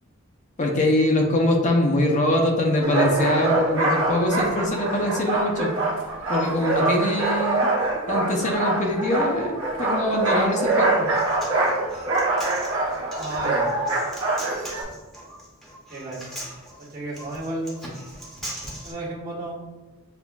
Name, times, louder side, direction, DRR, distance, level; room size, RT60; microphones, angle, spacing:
voice 1, 0.6-5.7 6.3-7.7 8.1-11.1 17.8-17.9, left 1 dB, 35° left, 1 dB, 0.6 m, -23 dB
sound 1, 2.8-14.8, right 2 dB, 75° right, 0.9 m, -24 dB
Human voice, 10.9-18.9, right 1 dB, ahead, 0.9 m, -40 dB
voice 2, 13.2-13.7 15.9-16.2 16.8-17.8 18.8-19.6, right 1 dB, 45° right, -6 dB, 1.3 m, -32 dB
6.9 x 2.4 x 2.3 m, 1.2 s
head